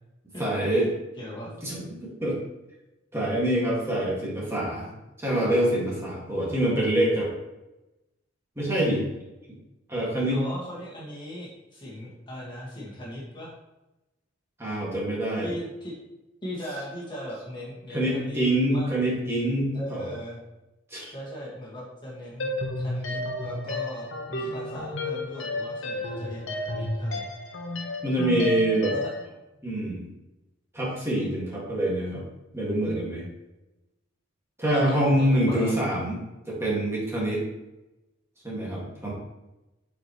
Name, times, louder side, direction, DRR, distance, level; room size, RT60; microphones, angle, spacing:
voice 1, 0.4-0.9 1.6-2.4 3.1-4.9 5.2-7.3 8.6-9.1 9.9-10.4 14.6-15.5 17.9-20.1 20.9-21.1 28.0-28.9 29.6-30.0 30.7-32.2 32.5-33.2 34.6-36.2 36.5-37.4 38.4-39.1, right 1 dB, 15° right, -6 dB, 2.1 m, -25 dB
voice 2, 1.2-1.5 10.3-13.5 15.4-16.0 16.4-18.4 18.7-18.9 19.7-20.4 21.0-27.3 28.9-29.1 34.7-35.7, equal, 25° left, -6 dB, 1.8 m, -38 dB
sound 1, 22.4-29.3, left 2 dB, 85° left, 1.0 m, -32 dB
8.4 x 4.8 x 3.2 m, 0.97 s
head